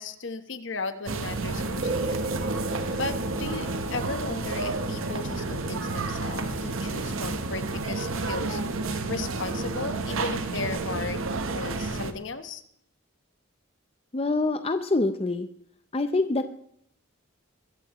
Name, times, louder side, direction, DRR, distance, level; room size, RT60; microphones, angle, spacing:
voice 1, 0.0-2.3 2.9-8.6 8.9-11.2 11.5-12.6, left 3 dB, 60° left, 10 dB, 1.1 m, -35 dB
sound 1, 1.1-12.1, right 3 dB, 80° right, 1.0 m, -31 dB
sound 2, 1.8-10.6, right 1 dB, 55° right, 1.4 m, -37 dB
voice 2, 14.1-15.5 15.9-16.5, left 2 dB, 30° left, 9 dB, 0.6 m, -25 dB
22.5 x 15.0 x 3.0 m, 0.67 s
head